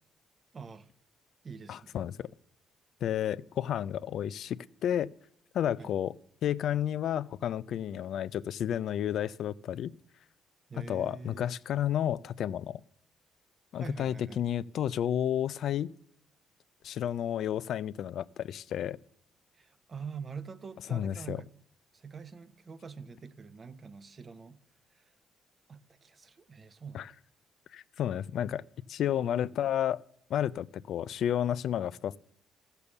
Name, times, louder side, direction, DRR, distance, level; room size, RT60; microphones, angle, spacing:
voice 1, 0.5-0.9 1.4-2.0 5.8-5.9 10.7-11.5 13.7-14.5 19.5-21.5 21.9-24.6 24.9-25.1 25.7-27.0, right 5 dB, 40° right, 0.8 m, -45 dB
voice 2, 1.7-2.3 3.0-5.1 5.5-6.1 6.4-10.0 10.8-12.8 13.7-15.9 16.8-19.0 20.9-21.4 26.9-27.1 27.7-28.6 28.9-30.0 30.3-32.2, left 10 dB, 70° left, 0.4 m, -31 dB
14.0 x 6.8 x 7.0 m
cardioid pair, 90°, 0 cm